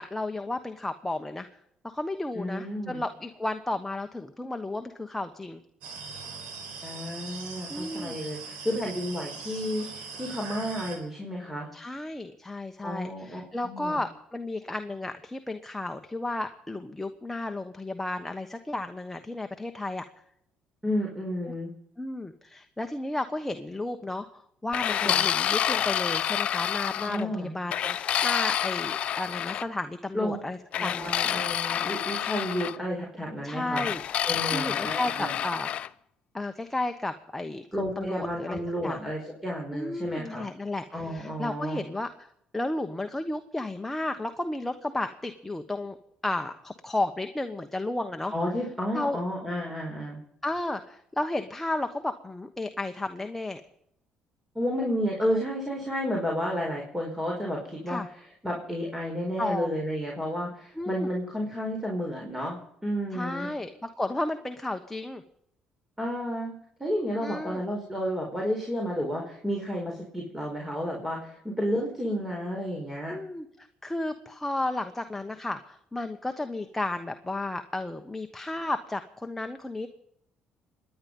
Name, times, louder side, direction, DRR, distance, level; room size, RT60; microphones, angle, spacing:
voice 1, 0.0-1.5 1.8-5.6 7.7-8.2 11.7-20.0 21.4-21.5 22.0-31.1 33.4-34.0 34.5-35.7 36.3-39.0 39.7-42.1 42.5-46.0 46.2-48.3 48.9-49.2 50.4-53.6 55.2-55.4 57.9-58.1 59.4-59.8 60.8-61.1 63.1-65.2 67.2-67.6 73.1-73.5 73.8-79.9, left 2 dB, 10° left, 6 dB, 1.1 m, -33 dB
voice 2, 2.3-3.0 6.8-11.7 12.8-14.0 20.8-21.7 25.0-25.2 27.1-27.5 30.1-30.4 30.8-33.9 34.3-35.4 37.7-40.5 40.9-41.8 48.3-50.2 54.5-58.0 58.4-63.5 66.0-66.5 66.8-73.2, equal, 10° right, -1 dB, 4.7 m, -31 dB
sound 1, 5.8-11.0, right 5 dB, 85° right, 4.0 m, -41 dB
sound 2, 24.7-27.2 27.7-29.7 30.7-32.8 33.8-35.9, left 10 dB, 60° left, 0.6 m, -28 dB
25.0 x 10.5 x 5.4 m, 0.74 s
supercardioid pair, 80°, 2 cm